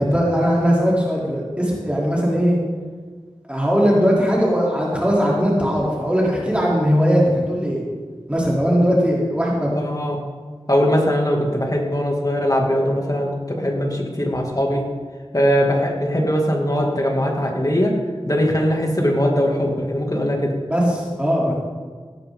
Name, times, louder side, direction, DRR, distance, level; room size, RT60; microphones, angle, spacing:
voice 1, 0.0-2.6 3.5-7.8 8.3-9.8 20.7-21.6, equal, 10° right, -5 dB, 3.6 m, -19 dB
voice 2, 9.7-10.2 10.7-14.9 15.3-17.9 18.3-20.5, equal, 35° left, 0 dB, 2.6 m, -20 dB
16.0 x 13.0 x 4.0 m, 1.5 s
wide cardioid pair, 55°, 11 cm